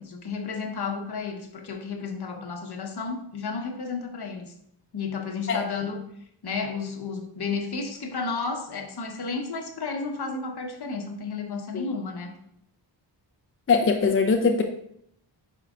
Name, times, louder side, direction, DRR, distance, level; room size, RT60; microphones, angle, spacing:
voice 1, 0.0-4.5 4.9-6.0 6.4-12.4, left 4 dB, 60° left, 4 dB, 1.1 m, -32 dB
voice 2, 13.7-14.6, left 4 dB, 30° left, 5 dB, 0.5 m, -21 dB
10.5 x 4.7 x 2.4 m, 0.72 s
wide cardioid pair, 95°, 45 cm